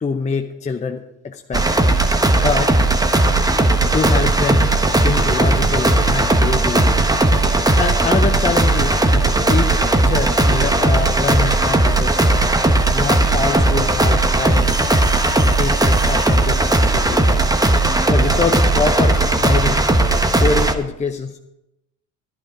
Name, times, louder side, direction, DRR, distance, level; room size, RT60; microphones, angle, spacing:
voice 1, 0.0-1.7 2.4-2.7 3.8-4.7 5.0-7.0 7.8-9.0 9.5-9.8 10.0-12.4 12.9-14.7 15.4-17.4 18.1-19.9 20.4-21.4, left 4 dB, 20° left, 4 dB, 0.8 m, -24 dB
sound 1, 1.5-20.7, right 2 dB, 10° right, 1.1 m, -16 dB
11.5 x 10.5 x 4.9 m, 0.89 s
supercardioid pair, 90°, 35 cm